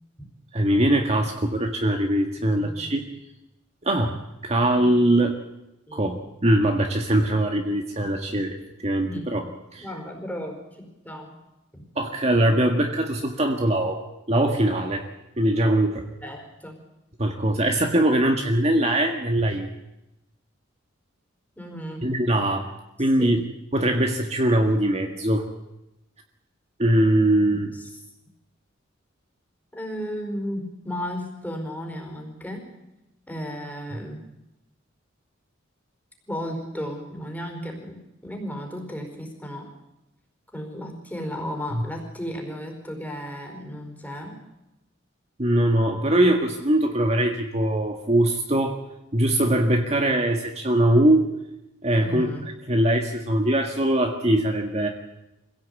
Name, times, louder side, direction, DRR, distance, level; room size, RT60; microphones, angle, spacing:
voice 1, 0.5-3.0 3.8-4.2 4.4-5.4 5.9-8.5 8.8-9.4 9.7-9.9 11.9-14.0 14.3-15.1 15.4-16.1 17.2-19.7 22.0-22.7 23.0-23.4 23.7-25.5 26.8-27.7 41.7-41.8 45.4-48.8 49.1-51.3 51.8-52.3 52.7-54.9, right 1 dB, 35° right, 3 dB, 1.8 m, -21 dB
voice 2, 2.6-3.1 5.9-6.0 9.0-9.4 9.8-11.3 11.7-11.8 16.2-16.8 21.6-22.1 23.2-23.4 27.7-27.9 29.7-32.7 33.3-34.2 36.3-39.7 40.5-44.4 52.0-52.5, equal, 10° left, 2 dB, 4.7 m, -34 dB
25.0 x 16.5 x 8.4 m, 0.94 s
head